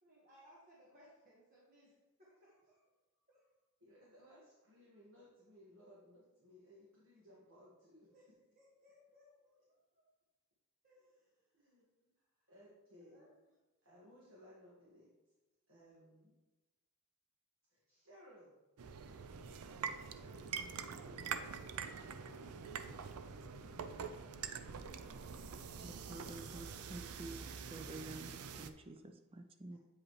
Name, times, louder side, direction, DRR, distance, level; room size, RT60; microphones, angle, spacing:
voice 1, 0.0-2.8 3.3-3.4 8.0-8.2 8.6-9.6 9.9-10.0 10.8-11.5 12.4-12.5 13.1-13.3 14.0-14.1, equal, 40° right, -6 dB, 1.4 m, -65 dB
voice 2, 3.8-8.1 11.5-12.1 12.5-13.2 13.8-15.1 15.7-16.3 17.7-18.6 19.8-21.6 22.0-22.3 23.5-24.0, equal, 65° right, -7 dB, 1.8 m, -62 dB
sound 1, 18.8-28.7, right 6 dB, 85° right, 0.5 m, -45 dB
voice 3, 25.8-27.4 27.7-29.8, right 2 dB, 25° right, 7 dB, 0.4 m, -50 dB
8.5 x 5.1 x 3.2 m, 1.1 s
head